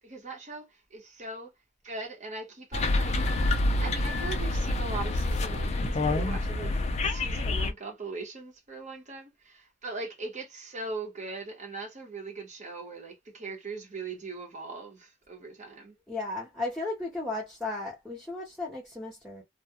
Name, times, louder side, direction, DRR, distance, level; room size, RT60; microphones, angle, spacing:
voice 1, 0.0-1.5 1.8-3.1 3.8-6.7 7.0-15.9, right 3 dB, 35° right, 0.9 m, -40 dB
sound 1, 2.7-7.7, left 2 dB, 30° left, 0.4 m, -27 dB
voice 2, 16.1-19.4, left 2 dB, ahead, 0.7 m, -35 dB
2.2 x 2.2 x 2.8 m
head